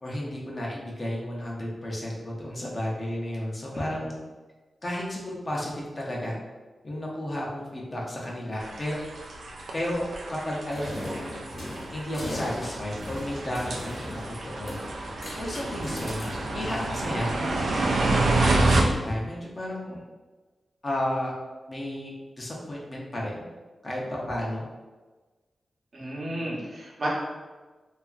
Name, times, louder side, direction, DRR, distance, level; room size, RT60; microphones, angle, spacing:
voice 1, 0.0-4.2 4.8-6.4 6.8-9.0 9.7-10.0 10.3-11.4 11.9-14.8 15.4-17.7 18.3-20.0 20.8-21.3 21.7-23.4 23.8-24.6, left 1 dB, 40° left, -3 dB, 0.6 m, -33 dB
sound 1, 8.6-18.8, right 2 dB, 85° right, 0.3 m, -29 dB
sound 2, 10.7-17.4, left 1 dB, 55° left, 0.9 m, -38 dB
voice 2, 25.9-27.1, right 1 dB, 70° right, -6 dB, 0.8 m, -32 dB
2.8 x 2.4 x 2.4 m, 1.3 s
wide cardioid pair, 85°, 0 cm